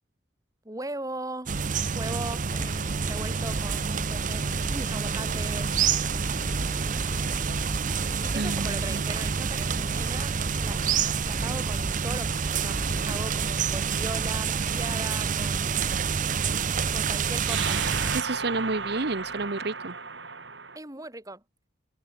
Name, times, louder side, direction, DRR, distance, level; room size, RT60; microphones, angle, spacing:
voice 1, 0.6-1.6 2.0-5.7 8.1-10.9 11.2-12.8 13.1-15.9 16.9-17.8 20.7-21.4, right 2 dB, 20° right, 4.1 m, -39 dB
sound 1, 1.5-18.2, right 6 dB, 45° right, 0.7 m, -28 dB
sound 2, 2.5-19.5, equal, 15° left, 5.4 m, -40 dB
voice 2, 8.3-9.0 18.1-19.9, right 3 dB, 65° right, 1.1 m, -30 dB
sound 3, 12.5-14.4 17.4-20.8, right 5 dB, 80° right, 5.6 m, -35 dB
head